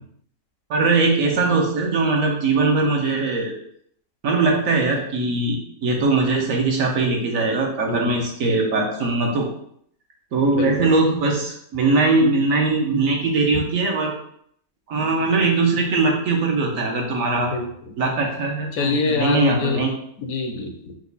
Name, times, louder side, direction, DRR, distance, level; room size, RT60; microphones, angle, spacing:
voice 1, 0.7-3.5 4.2-9.5 10.3-14.1 14.9-17.5 18.0-19.9, right 3 dB, 65° right, 1 dB, 1.1 m, -21 dB
voice 2, 7.9-8.2 10.5-10.9 17.4-17.9 18.7-19.8 20.2-21.0, left 4 dB, 70° left, 4 dB, 1.0 m, -25 dB
4.5 x 2.3 x 3.9 m, 0.67 s
omnidirectional pair, 1.6 m